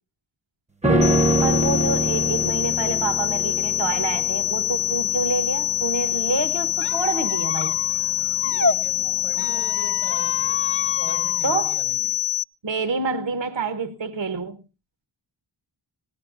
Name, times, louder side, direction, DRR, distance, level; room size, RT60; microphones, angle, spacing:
sound 1, 0.8-10.2 10.5-10.6, right 1 dB, 15° right, 0.6 m, -26 dB
sound 2, 1.0-12.4, left 13 dB, 60° left, 0.9 m, -25 dB
voice 1, 1.4-7.8 11.4-11.8 12.6-14.6, right 4 dB, 60° right, 0.9 m, -27 dB
Squeak, 6.8-8.8 9.3-11.4, left 4 dB, 25° left, 0.6 m, -29 dB
voice 2, 8.4-10.6 11.0-12.2, right 1 dB, 85° right, 7.7 m, -39 dB
19.5 x 17.0 x 2.5 m
wide cardioid pair, 50°, 49 cm